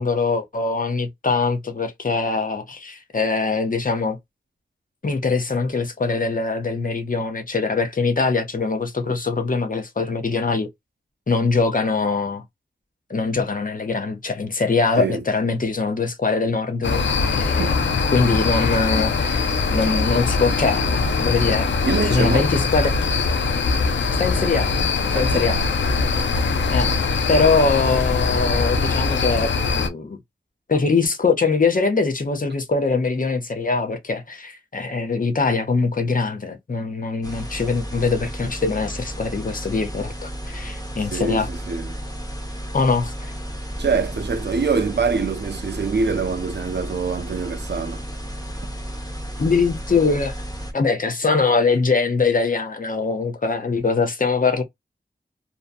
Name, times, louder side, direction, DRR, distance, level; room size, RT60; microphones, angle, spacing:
voice 1, 0.0-4.2 5.0-10.7 11.3-12.4 13.1-17.8 18.1-20.9 21.2-21.7 22.0-22.9 24.2-24.7 25.1-25.6 26.7-26.9 27.3-30.2 30.7-41.5 42.7-43.3 49.4-50.3 50.7-54.6, left 4 dB, 45° left, 0.7 m, -22 dB
sound 1, 16.8-29.9, left 4 dB, 90° left, 0.4 m, -22 dB
voice 2, 21.8-22.5 25.1-25.6 41.0-42.0 43.8-48.0, right 5 dB, 70° right, 0.5 m, -25 dB
sound 2, 37.2-50.7, equal, 20° left, 1.0 m, -33 dB
2.6 x 2.1 x 2.5 m
wide cardioid pair, 55°, 19 cm